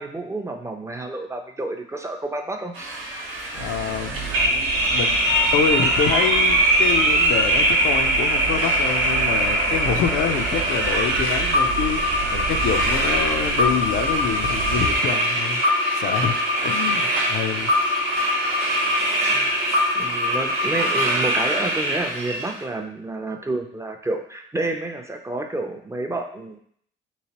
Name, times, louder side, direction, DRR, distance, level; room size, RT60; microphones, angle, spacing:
voice 1, 0.0-3.0 19.3-19.5 19.9-26.6, right 2 dB, 15° right, 3 dB, 0.4 m, -29 dB
sound 1, 2.7-22.5, equal, 90° right, 1.0 m, -22 dB
voice 2, 3.5-12.0 12.3-15.6 15.9-17.7, left 7 dB, 80° left, 7 dB, 0.4 m, -27 dB
sound 2, 3.5-15.0, right 5 dB, 70° right, 0.7 m, -32 dB
3.2 x 3.0 x 2.9 m, 0.63 s
cardioid pair, 90°, 20 cm